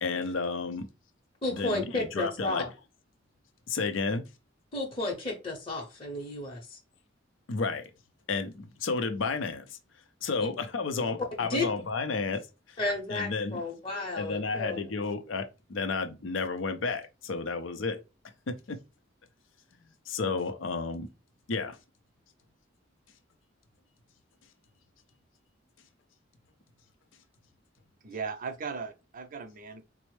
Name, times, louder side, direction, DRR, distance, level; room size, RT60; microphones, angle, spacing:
voice 1, 0.0-0.9 1.5-2.6 3.7-4.3 7.5-7.9 8.3-9.8 10.2-12.8 13.1-13.6 14.2-18.0 18.5-18.8 20.1-21.1 21.5-21.8, left 4 dB, 80° left, 0.5 m, -32 dB
voice 2, 1.4-2.7 4.7-6.8 11.5-11.7 12.8-14.8, left 2 dB, 30° left, 0.8 m, -32 dB
voice 3, 28.0-29.8, right 5 dB, 45° right, 0.5 m, -37 dB
4.3 x 2.0 x 3.1 m
head